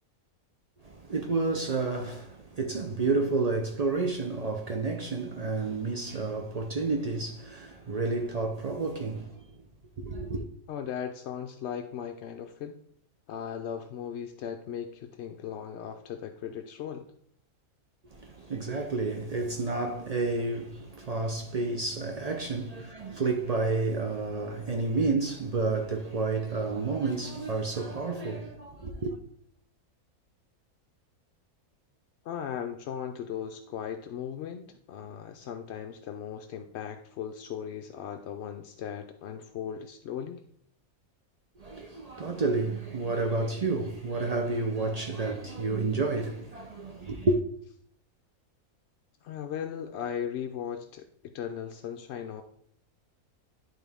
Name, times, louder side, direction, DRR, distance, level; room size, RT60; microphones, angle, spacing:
voice 1, 0.8-9.4 10.0-10.4 18.1-29.2 41.6-47.4, right 3 dB, 70° right, 0.3 m, -30 dB
voice 2, 10.7-12.8 13.3-17.1 32.2-40.4 49.2-52.4, left 8 dB, 65° left, 0.7 m, -37 dB
11.0 x 3.7 x 3.5 m
omnidirectional pair, 1.5 m